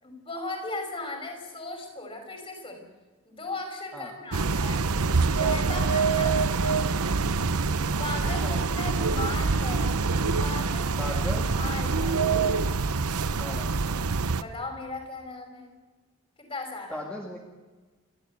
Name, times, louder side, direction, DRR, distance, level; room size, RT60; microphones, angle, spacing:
voice 1, 0.0-2.8 3.3-4.8 5.3-7.0 8.0-10.0 10.4-11.2 11.6-12.2 14.4-15.7 16.4-17.0, left 2 dB, 25° left, 4 dB, 5.6 m, -37 dB
sound 1, 4.3-14.4, right 4 dB, 90° right, 0.9 m, -25 dB
voice 2, 8.1-8.8 11.0-11.6 13.4-13.7 16.9-17.4, equal, 5° left, -2 dB, 2.2 m, -38 dB
30.0 x 13.5 x 8.3 m, 1.3 s
head